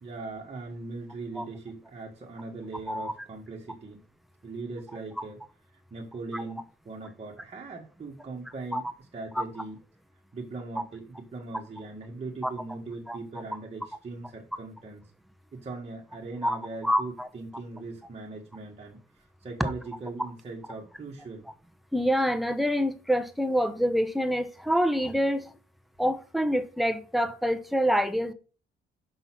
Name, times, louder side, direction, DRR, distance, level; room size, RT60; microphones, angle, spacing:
voice 1, 0.0-4.0 4.4-5.4 5.9-9.8 10.3-15.0 15.5-21.5, right 3 dB, 30° right, 1.5 m, -40 dB
voice 2, 16.8-17.3 21.9-25.5 26.0-28.3, equal, ahead, 0.8 m, -26 dB
5.7 x 3.9 x 5.9 m
cardioid pair, 90°, 20 cm